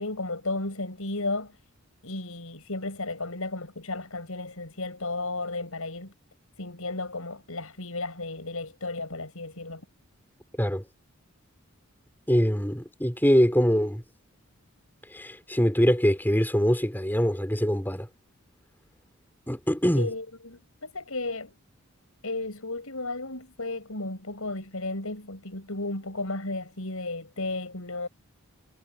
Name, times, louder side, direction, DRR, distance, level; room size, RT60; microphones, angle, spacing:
voice 1, 0.0-1.6 2.0-6.1 6.6-9.8 20.0-21.5 22.2-28.1, left 2 dB, 75° left, 6.0 m, -34 dB
voice 2, 12.3-14.0 15.1-18.1 19.5-20.1, equal, 10° left, 4.2 m, -23 dB
head